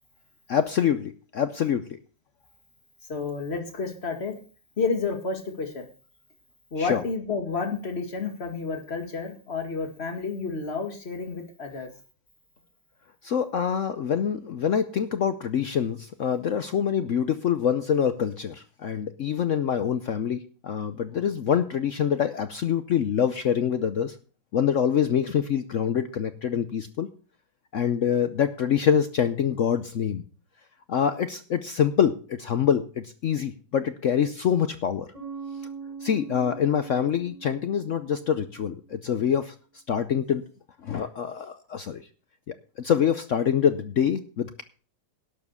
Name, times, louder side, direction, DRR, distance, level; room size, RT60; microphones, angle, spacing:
voice 1, 0.5-1.9 6.8-7.0 13.2-24.2 24.5-27.1 27.7-30.2 30.9-35.1 36.0-39.5 39.9-40.4 40.8-42.0 42.5-44.6, left 8 dB, 65° left, 11 dB, 0.7 m, -25 dB
voice 2, 3.1-4.3 4.8-5.8 6.7-11.9, left 4 dB, 35° left, 4 dB, 2.3 m, -30 dB
Bass guitar, 35.1-38.8, right 5 dB, 20° right, 4.8 m, -41 dB
11.5 x 7.2 x 7.0 m, 0.39 s
omnidirectional pair, 2.0 m